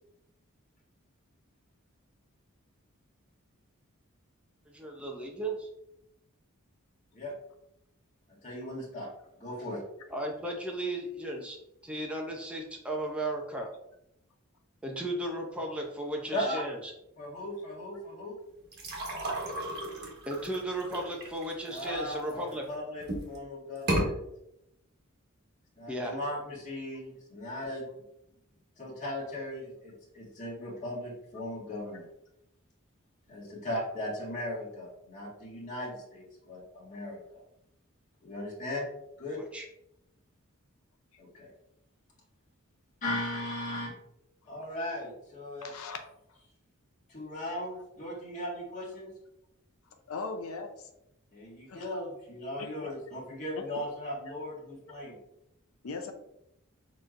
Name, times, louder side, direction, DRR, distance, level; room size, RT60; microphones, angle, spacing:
voice 1, 4.7-5.7 10.1-11.6 11.8-13.7 14.8-16.8 20.3-22.6 25.9-26.2 39.3-39.6, right 1 dB, 5° right, 0 dB, 0.5 m, -35 dB
voice 2, 8.4-9.1 9.4-9.8 16.3-16.6 17.2-18.4 21.7-24.1 25.8-27.9 28.8-32.1 33.3-37.4 38.2-38.9 39.2-39.4 41.2-41.5 43.0-43.9 44.5-45.7 47.1-49.1 51.3-55.2, left 1 dB, 35° left, -5 dB, 1.7 m, -37 dB
sound 1, 18.7-22.5 23.0-23.4 23.8-24.1, right 1 dB, 50° right, 1.2 m, -34 dB
voice 3, 45.6-46.0 50.1-50.9 51.7-51.9 52.6-52.9 55.8-56.1, left 4 dB, 80° left, 6 dB, 0.6 m, -39 dB
6.5 x 3.1 x 2.5 m, 0.81 s
head